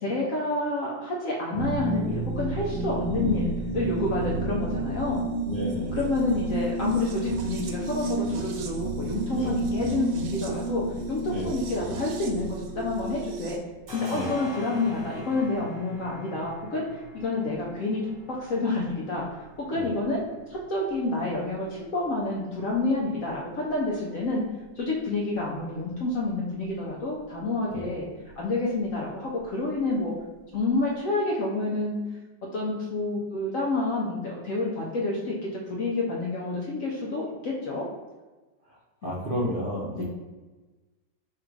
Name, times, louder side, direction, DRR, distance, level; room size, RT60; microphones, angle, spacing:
voice 1, 0.0-5.3 5.9-10.8 11.1-13.6 13.9-16.8 17.1-18.0 18.3-20.2 20.5-24.4 24.8-28.1 28.4-30.1 30.5-32.0 32.5-37.8 39.0-39.1 39.9-40.0, left 2 dB, 70° left, -3 dB, 0.7 m, -28 dB
sound 1, 1.5-13.6, right 2 dB, 90° right, 1.4 m, -31 dB
voice 2, 3.1-3.5 4.2-4.6 5.4-6.0 9.3-9.7 11.3-11.6 14.1-14.3 19.7-19.9 27.7-27.9 38.7-40.0, equal, 60° right, -6 dB, 0.5 m, -32 dB
sound 2, 12.6-13.2 13.5-31.0, equal, 40° right, 1.2 m, -47 dB
3.4 x 2.5 x 4.5 m, 1.2 s
omnidirectional pair, 2.1 m